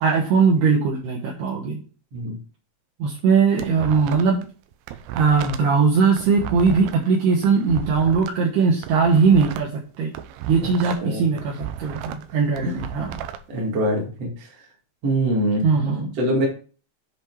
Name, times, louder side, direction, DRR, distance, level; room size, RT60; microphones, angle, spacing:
voice 1, 0.0-1.8 3.0-4.4 5.1-10.1 10.5-13.2 15.6-16.1, right 5 dB, 70° right, -2 dB, 3.0 m, -20 dB
sound 1, 3.2-4.5 4.7-8.3 8.7-11.1 11.4-13.4, right 11 dB, 85° right, 2.5 m, -35 dB
voice 2, 12.3-12.7 13.5-14.5 15.0-16.5, right 1 dB, 45° right, -1 dB, 2.3 m, -24 dB
7.9 x 5.4 x 4.6 m, 0.38 s
omnidirectional pair, 5.4 m